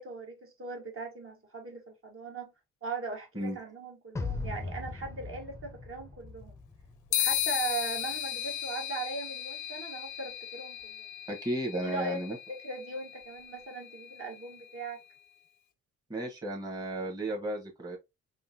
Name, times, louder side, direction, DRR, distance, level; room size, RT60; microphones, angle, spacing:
voice 1, 0.0-2.5 2.8-6.5 7.1-11.0 11.8-12.2 12.5-15.0, right 3 dB, 45° right, 1.3 m, -39 dB
sound 1, 4.2-7.4, left 3 dB, 10° left, 0.5 m, -39 dB
sound 2, 7.1-14.8, left 12 dB, 80° left, 0.6 m, -36 dB
voice 2, 11.3-12.4 16.1-18.0, right 1 dB, 10° right, 1.0 m, -34 dB
3.6 x 2.6 x 2.6 m
cardioid pair, 90°, 30 cm